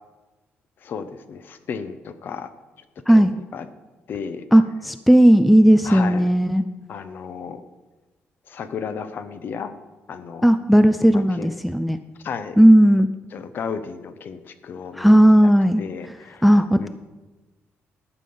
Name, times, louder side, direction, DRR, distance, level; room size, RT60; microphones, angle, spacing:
voice 1, 0.8-2.5 3.1-3.7 4.1-4.5 5.8-6.3 6.9-7.6 8.5-9.7 10.1-10.5 11.0-11.5 12.2-12.6 13.3-15.2 15.8-16.5 16.8-16.9, left 6 dB, 45° left, 11 dB, 0.7 m, -33 dB
voice 2, 4.5-6.6 10.4-12.0 12.6-13.1 15.0-15.8 16.4-16.9, equal, ahead, 10 dB, 0.3 m, -15 dB
12.5 x 6.8 x 5.5 m, 1.2 s
cardioid pair, 165°, 5 cm